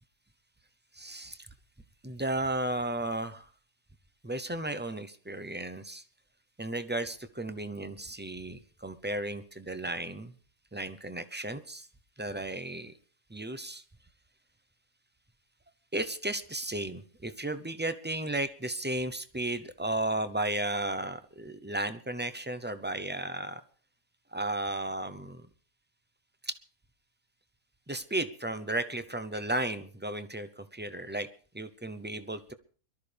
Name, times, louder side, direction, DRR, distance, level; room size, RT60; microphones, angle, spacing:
voice 1, 0.9-1.5 2.0-3.5 4.2-6.0 6.6-10.3 10.7-11.9 12.2-12.9 13.3-13.8 15.9-23.6 24.3-25.5 26.4-26.6 27.9-31.3 31.5-32.5, right 1 dB, 15° right, 11 dB, 0.4 m, -34 dB
23.0 x 13.0 x 3.4 m, 0.40 s
omnidirectional pair, 1.5 m